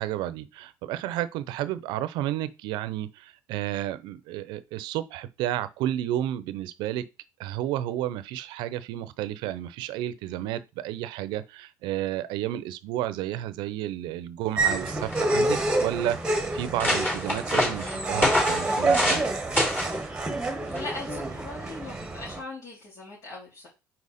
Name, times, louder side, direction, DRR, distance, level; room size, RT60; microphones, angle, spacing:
voice 1, 0.0-7.0 7.4-19.4, right 13 dB, 80° right, 0.6 m, -32 dB
sound 1, 14.6-22.4, right 2 dB, 10° right, 1.3 m, -28 dB
sound 2, 14.7-14.8 15.0-15.6 16.2-16.3 16.6-19.3 19.6-20.0 20.7-21.0, left 1 dB, 25° left, 3.2 m, -26 dB
voice 2, 20.7-23.7, left 2 dB, 60° left, 3.5 m, -39 dB
4.9 x 4.5 x 4.2 m
cardioid pair, 125°, 8 cm